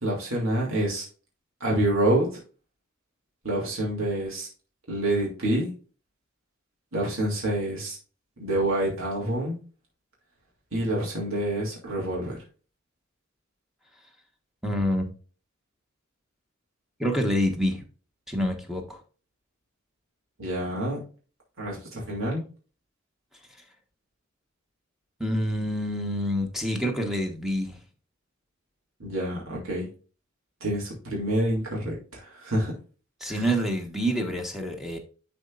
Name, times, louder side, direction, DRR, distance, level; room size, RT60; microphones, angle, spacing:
voice 1, 0.0-1.0 1.6-2.3 3.4-4.5 4.9-5.7 6.9-8.0 8.4-9.6 10.7-12.4 20.4-21.0 21.6-22.4 29.0-29.9 30.6-32.7 33.3-33.4, right 1 dB, 75° right, -2 dB, 2.7 m, -27 dB
voice 2, 14.6-15.1 17.0-17.8 18.3-19.0 25.2-27.8 33.2-35.0, equal, ahead, 2 dB, 1.2 m, -27 dB
11.0 x 4.3 x 2.5 m, 0.37 s
head